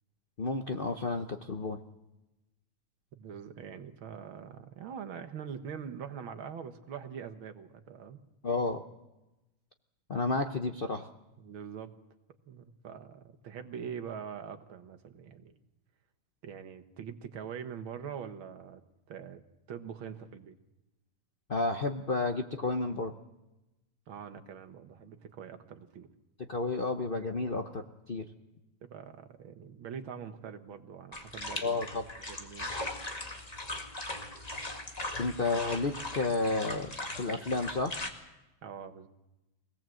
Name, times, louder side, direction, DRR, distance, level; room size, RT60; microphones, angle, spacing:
voice 1, 0.4-1.8 8.4-8.8 10.1-11.1 21.5-23.1 26.5-28.3 31.6-32.0 35.2-36.9 37.2-38.0, left 3 dB, 90° left, 6 dB, 0.4 m, -31 dB
voice 2, 3.1-8.2 11.4-11.9 12.5-15.5 16.4-18.8 19.1-19.4 19.7-20.6 24.1-26.1 28.8-31.8 32.3-32.8 38.6-39.1, right 7 dB, 65° right, 8 dB, 2.1 m, -43 dB
sound 1, 31.1-38.1, left 2 dB, 20° left, 1.8 m, -39 dB
24.5 x 18.5 x 7.7 m, 1.0 s
omnidirectional pair, 2.4 m